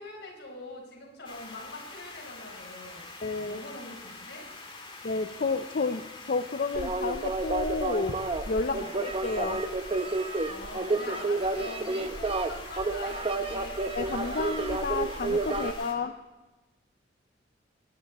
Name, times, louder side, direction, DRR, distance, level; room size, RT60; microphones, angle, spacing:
voice 1, 0.0-3.0 3.4-4.5 8.7-8.9 10.5-13.8, left 2 dB, 65° left, -1 dB, 4.6 m, -44 dB
sound 1, 1.2-15.9, left 3 dB, 30° left, 2.0 m, -45 dB
voice 2, 3.2-3.6 5.0-9.6 13.9-16.1, left 3 dB, 50° left, 9 dB, 0.5 m, -31 dB
sound 2, 6.7-15.7, right 2 dB, 30° right, 0.7 m, -30 dB
20.5 x 10.5 x 4.2 m, 1.1 s
head